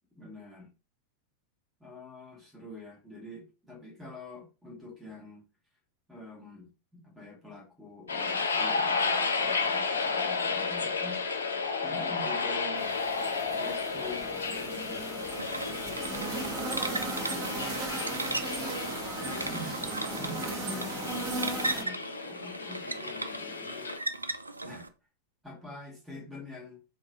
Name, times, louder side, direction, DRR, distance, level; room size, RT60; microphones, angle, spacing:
voice 1, 0.2-0.7 1.8-5.4 6.1-11.2 11.8-12.9 13.5-14.9 15.4-18.6 19.2-23.9 24.6-24.9 25.4-26.8, left 2 dB, 5° right, -2 dB, 1.7 m, -46 dB
sound 1, 8.1-24.0, left 4 dB, 70° left, 0.5 m, -33 dB
sound 2, 12.8-21.8, right 2 dB, 30° right, 1.2 m, -37 dB
sound 3, 15.4-24.9, right 2 dB, 85° right, 0.3 m, -37 dB
3.6 x 2.6 x 3.2 m, 0.32 s
figure-of-eight pair, 90°, 0 cm